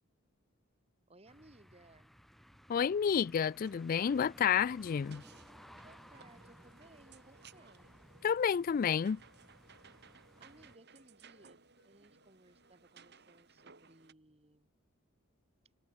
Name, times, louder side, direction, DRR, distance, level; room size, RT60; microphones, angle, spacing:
voice 1, 1.1-2.2 5.7-7.9 10.4-14.7, right 2 dB, 30° right, 2.4 m, -62 dB
sound 1, 1.3-10.8, equal, ahead, 3.7 m, -58 dB
voice 2, 2.7-5.2 8.2-9.2, left 7 dB, 45° left, 0.3 m, -30 dB
sound 2, 3.6-14.1, right 5 dB, 55° right, 4.5 m, -61 dB
Wind instrument woodwind instrument, 7.7-11.9 12.2-13.3 13.5-13.7, left 3 dB, 85° left, 6.4 m, -76 dB
head